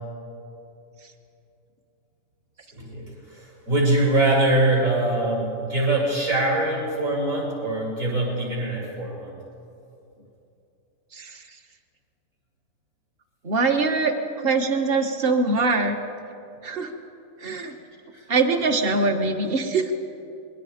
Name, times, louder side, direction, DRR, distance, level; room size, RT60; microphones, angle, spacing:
voice 1, 2.7-9.3 18.1-18.2, right 2 dB, 60° right, -4 dB, 7.7 m, -23 dB
voice 2, 13.4-16.0 16.6-16.9 17.4-17.7 18.3-19.9, right 3 dB, 40° right, 5 dB, 1.6 m, -23 dB
28.0 x 22.0 x 5.2 m, 2.7 s
omnidirectional pair, 1.6 m